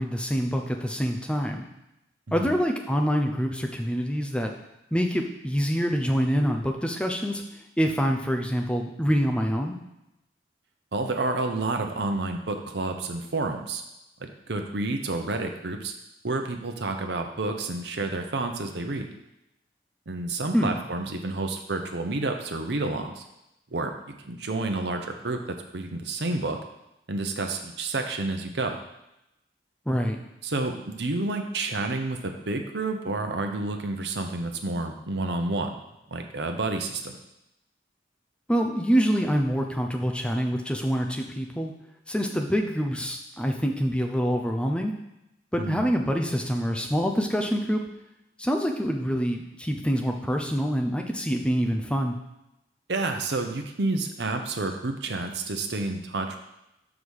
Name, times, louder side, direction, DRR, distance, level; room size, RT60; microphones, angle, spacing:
voice 1, 0.0-1.6 2.3-4.5 4.9-9.8 20.5-20.8 29.9-30.2 38.5-41.7 42.1-44.9 45.5-47.8 48.4-52.1, equal, 5° left, 2 dB, 0.6 m, -26 dB
voice 2, 10.9-13.8 14.2-15.9 16.2-19.1 20.1-23.2 23.7-23.9 24.2-26.6 27.1-28.8 30.4-35.8 36.1-37.1 45.6-45.8 52.9-56.4, right 2 dB, 75° right, 5 dB, 0.8 m, -29 dB
5.5 x 4.9 x 6.4 m, 0.89 s
head